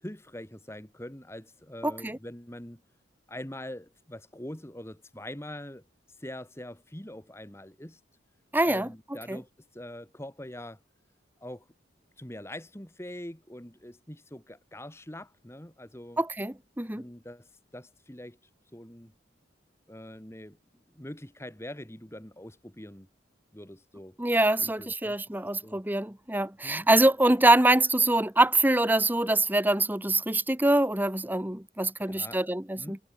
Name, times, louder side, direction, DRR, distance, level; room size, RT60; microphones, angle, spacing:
voice 1, 0.0-2.8 3.3-5.8 6.2-8.0 8.6-10.8 11.4-11.7 12.2-16.2 16.9-18.4 18.7-19.1 19.9-20.6 20.9-23.1 23.5-24.2 24.6-25.1 25.6-25.8 26.6-26.9 32.1-33.0, left 1 dB, 15° left, 2.0 m, -43 dB
voice 2, 1.8-2.2 8.5-8.9 9.3-9.4 16.2-17.0 24.2-33.0, right 2 dB, 10° right, 1.2 m, -24 dB
head